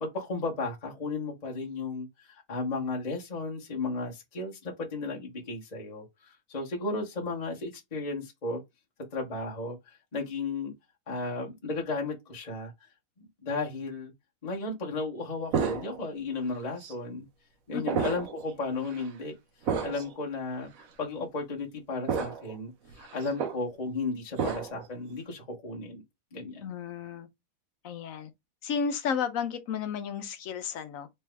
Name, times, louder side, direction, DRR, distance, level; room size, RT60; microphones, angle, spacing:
voice 1, 0.0-8.6 9.1-10.7 11.1-12.7 13.4-14.1 14.4-17.3 17.7-19.3 19.8-20.7 21.0-22.7 23.0-26.0 26.3-26.7, left 3 dB, 30° left, 1.3 m, -34 dB
sound 1, 15.5-16.2 16.8-16.9 17.9-18.4 18.8-19.0 19.7-20.1 20.8-20.9 22.1-22.6 22.9-23.6 24.4-24.9, right 6 dB, 65° right, 1.2 m, -31 dB
voice 2, 26.6-27.3 27.8-28.3 28.6-31.1, left 6 dB, 65° left, 1.1 m, -32 dB
3.4 x 3.4 x 3.3 m
omnidirectional pair, 1.6 m